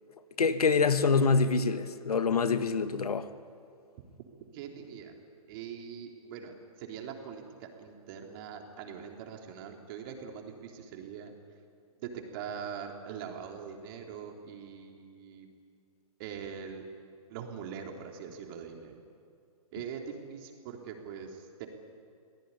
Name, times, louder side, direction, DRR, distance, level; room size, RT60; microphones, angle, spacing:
voice 1, 0.4-3.3, left 4 dB, 85° left, 11 dB, 1.5 m, -25 dB
voice 2, 4.5-5.2 5.5-11.3 12.0-15.5 16.2-16.9 17.3-18.9 19.7-21.7, right 7 dB, 40° right, 3 dB, 3.5 m, -42 dB
24.0 x 17.5 x 9.9 m, 2.3 s
hypercardioid pair, 140°, 19 cm